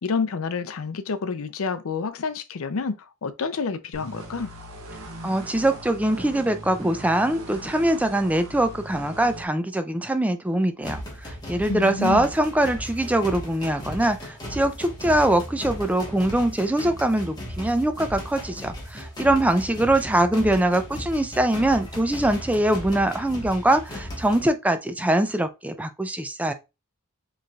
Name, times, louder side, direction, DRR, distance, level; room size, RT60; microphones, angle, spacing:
voice 1, 0.0-4.5 11.7-12.3, left 4 dB, 65° left, 0.5 m, -28 dB
sound 1, 3.9-9.4, right 1 dB, 65° right, 1.0 m, -40 dB
voice 2, 5.2-26.5, right 1 dB, 5° right, 0.4 m, -23 dB
sound 2, 10.8-24.5, equal, 20° left, 1.3 m, -36 dB
5.0 x 3.2 x 2.3 m
head